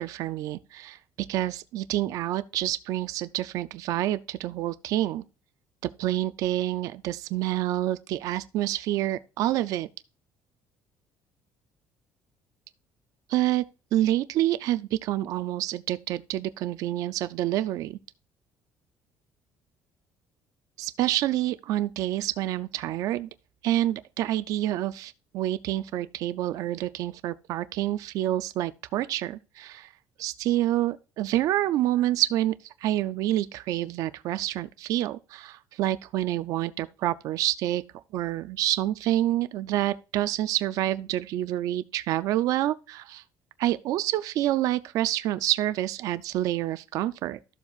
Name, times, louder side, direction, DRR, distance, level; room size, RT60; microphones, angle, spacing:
voice 1, 0.0-5.2 5.8-9.9 13.3-13.6 13.9-18.0 20.8-23.3 23.6-29.9 30.2-37.8 38.1-43.2 43.6-47.4, right 14 dB, 60° right, 0.4 m, -28 dB
13.0 x 7.0 x 2.4 m
cardioid pair, 165°, 7 cm